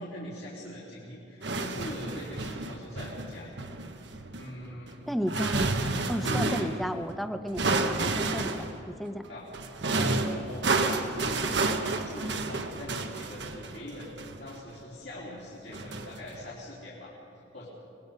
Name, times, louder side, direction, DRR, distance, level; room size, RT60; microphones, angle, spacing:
voice 1, 0.0-3.5 4.4-5.0 6.2-6.7 9.3-9.5 9.9-14.1 14.4-17.7, left 1 dB, 60° left, -7 dB, 3.5 m, -42 dB
sound 1, 1.4-6.8 7.6-8.8 9.5-14.8 15.7-16.4, right 3 dB, 60° right, 1.2 m, -30 dB
voice 2, 5.1-5.7 6.1-9.3, equal, ahead, 8 dB, 0.7 m, -33 dB
25.0 x 20.0 x 5.4 m, 2.7 s
head